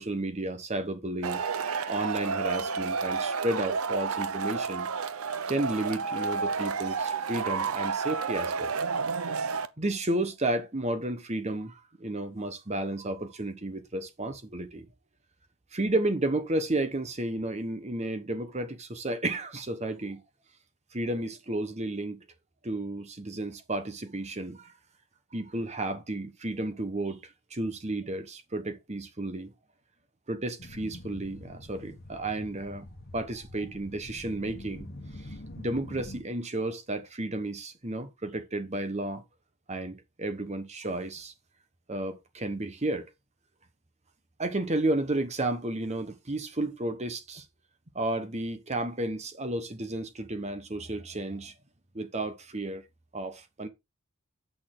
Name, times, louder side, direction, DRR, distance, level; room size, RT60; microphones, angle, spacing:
voice 1, 0.0-4.9 5.5-8.7 9.8-14.9 15.7-20.2 20.9-22.2 22.6-24.7 25.3-29.5 30.3-32.9 33.1-34.9 35.2-35.3 35.6-39.2 39.7-41.3 41.9-43.1 44.4-47.4 47.9-51.5 51.9-52.8 53.1-53.7, right 1 dB, 30° right, 1.1 m, -32 dB
Male speech man speaking / Shout / Clapping, 1.2-9.7, right 5 dB, 80° right, 0.8 m, -31 dB
sound 1, 30.6-36.2, left 1 dB, 45° left, 1.3 m, -45 dB
8.5 x 6.6 x 3.8 m
head